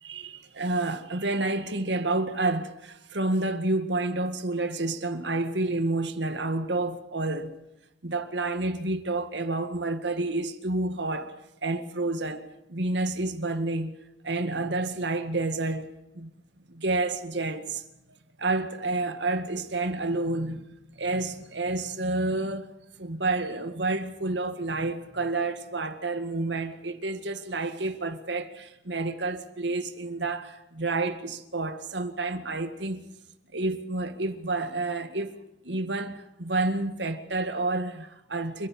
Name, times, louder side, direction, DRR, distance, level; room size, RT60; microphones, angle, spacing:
voice 1, 0.0-7.5 8.0-11.3 11.6-14.0 14.2-15.9 16.1-16.3 16.7-17.8 18.4-20.7 20.9-22.7 23.0-33.0 33.5-38.7, right 2 dB, 75° right, 1.9 m, -29 dB
30.0 x 11.0 x 8.8 m
head